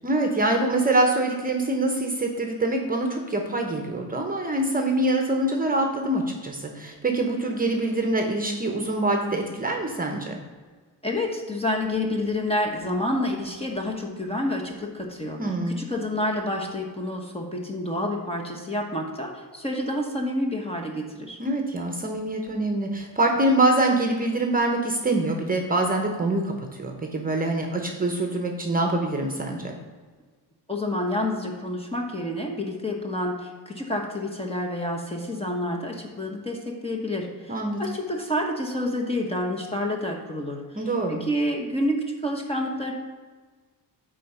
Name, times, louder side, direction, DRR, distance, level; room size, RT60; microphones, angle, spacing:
voice 1, 0.0-10.4 15.4-15.8 21.4-29.7 37.5-37.8 40.7-41.2, right 2 dB, 20° right, 2 dB, 0.9 m, -25 dB
voice 2, 11.0-15.4 15.7-21.4 30.7-40.6 41.1-42.9, left 1 dB, 15° left, 1 dB, 1.0 m, -28 dB
9.2 x 3.9 x 5.5 m, 1.4 s
cardioid pair, 140°, 41 cm